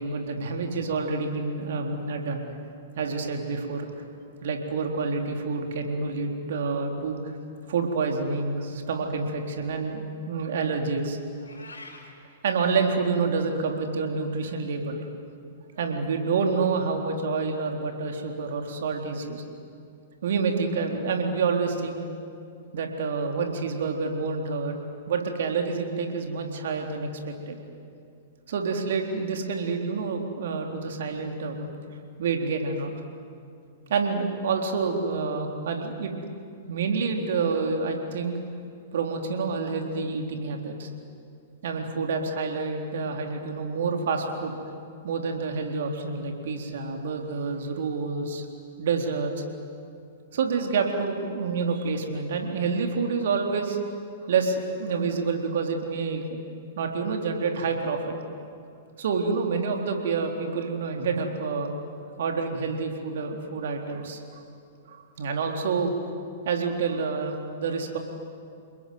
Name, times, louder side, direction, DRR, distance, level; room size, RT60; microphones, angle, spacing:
voice 1, 0.0-2.4 3.0-3.9 4.4-7.2 7.7-11.2 12.4-15.0 15.8-19.4 20.2-22.0 22.7-24.8 25.1-27.6 28.5-31.7 32.2-33.0 33.9-36.1 36.7-38.3 38.9-40.9 41.6-44.6 45.0-48.5 48.8-49.4 50.3-53.8 54.2-56.4 56.8-58.2 59.0-61.7 62.2-64.2 64.9-66.0 66.4-68.0, right 4 dB, 60° right, 3 dB, 3.8 m, -28 dB
Meow, 11.3-12.1, left 2 dB, 85° left, 4.8 m, -45 dB
29.5 x 21.0 x 9.5 m, 2.5 s
figure-of-eight pair, 110°, 0 cm